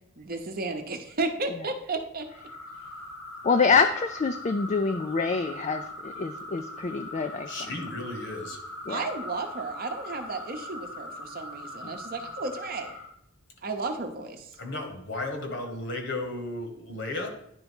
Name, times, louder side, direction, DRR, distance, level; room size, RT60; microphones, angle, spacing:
voice 1, 0.2-2.3 8.9-12.9 13.6-14.5, right 3 dB, 45° right, 5 dB, 0.8 m, -33 dB
sound 1, 2.3-13.1, left 1 dB, 80° left, 2.1 m, -41 dB
voice 2, 3.4-7.5 8.9-9.0, left 5 dB, 35° left, 7 dB, 0.4 m, -26 dB
voice 3, 7.4-8.6 14.6-17.3, left 2 dB, 60° left, 4 dB, 1.4 m, -34 dB
10.5 x 3.5 x 5.3 m, 0.76 s
head